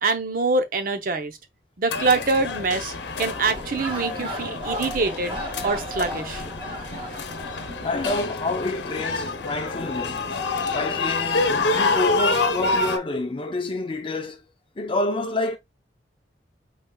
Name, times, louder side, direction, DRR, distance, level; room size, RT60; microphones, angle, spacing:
voice 1, 0.0-1.3 1.8-5.4 5.6-6.4, right 3 dB, 50° right, 0.7 m, -24 dB
sound 1, 1.9-13.0, left 3 dB, 70° left, 0.9 m, -27 dB
sound 2, 3.2-8.2, equal, 30° right, 1.2 m, -35 dB
voice 2, 4.0-4.3 7.8-10.5 10.7-14.4 14.8-15.6, left 2 dB, 30° left, 0.5 m, -28 dB
5.2 x 4.0 x 2.3 m
head